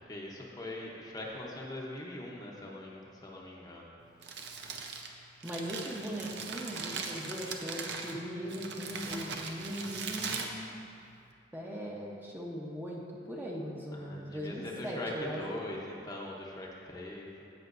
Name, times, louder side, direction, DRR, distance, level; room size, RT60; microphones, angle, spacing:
voice 1, 0.1-3.9 13.9-17.5, left 1 dB, 20° left, -3 dB, 0.8 m, -41 dB
Crumpling crinkling, 4.0-11.3, right 4 dB, 75° right, 0.7 m, -40 dB
voice 2, 5.4-10.5 11.5-15.4, equal, 10° right, -4 dB, 0.8 m, -39 dB
16.0 x 5.7 x 2.6 m, 2.5 s
head